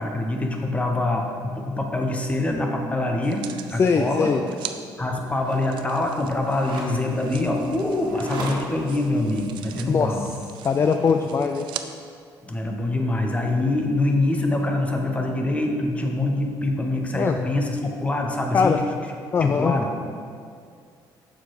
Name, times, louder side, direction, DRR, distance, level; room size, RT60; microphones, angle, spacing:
voice 1, 0.0-3.4 3.7-4.3 5.0-10.3 12.4-18.8 19.4-19.9, left 2 dB, 15° left, 2 dB, 1.0 m, -24 dB
sound 1, 3.2-4.8 5.6-11.9 12.5-12.6, right 11 dB, 75° right, 0.5 m, -41 dB
voice 2, 3.8-4.4 9.9-10.1 10.6-11.7 17.1-17.4 18.5-18.8 19.3-19.7, left 5 dB, 30° left, 6 dB, 0.4 m, -21 dB
sound 2, 5.3-11.2, right 2 dB, 55° right, 1.6 m, -39 dB
6.9 x 6.5 x 4.7 m, 2.2 s
cardioid pair, 115°, 8 cm